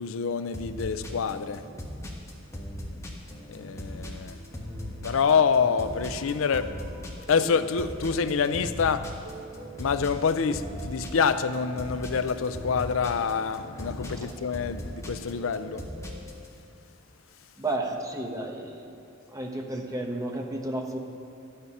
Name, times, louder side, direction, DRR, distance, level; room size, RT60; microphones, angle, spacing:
voice 1, 0.0-1.6 3.5-4.4 5.0-6.7 7.3-9.1 9.8-15.8, left 6 dB, 80° left, 0.5 m, -26 dB
sound 1, 0.5-16.5, left 1 dB, 15° left, 1.3 m, -39 dB
sound 2, 3.9-16.2, right 3 dB, 70° right, 1.2 m, -48 dB
voice 2, 17.6-18.9 19.3-21.0, right 2 dB, 15° right, 1.0 m, -32 dB
12.5 x 8.8 x 5.5 m
head